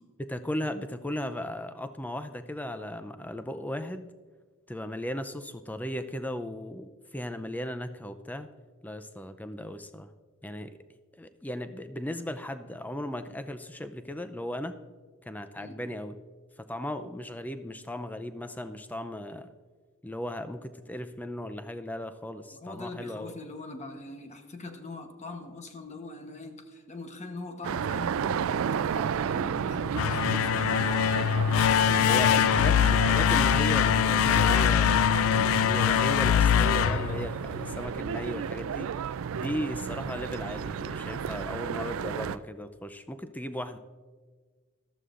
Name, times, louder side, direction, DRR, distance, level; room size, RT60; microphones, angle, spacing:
voice 1, 0.2-4.1 4.7-8.5 8.8-10.1 10.4-10.8 11.2-14.8 15.2-16.1 16.6-19.5 20.0-23.3 32.1-38.9 39.3-43.8, left 1 dB, 10° left, 10 dB, 0.5 m, -36 dB
voice 2, 22.5-28.5 28.9-32.5, left 2 dB, 35° left, 6 dB, 1.0 m, -43 dB
sound 1, 27.6-42.4, right 7 dB, 70° right, 0.3 m, -32 dB
sound 2, 29.8-37.8, left 9 dB, 75° left, 0.3 m, -23 dB
14.5 x 12.5 x 2.5 m, 1.5 s
head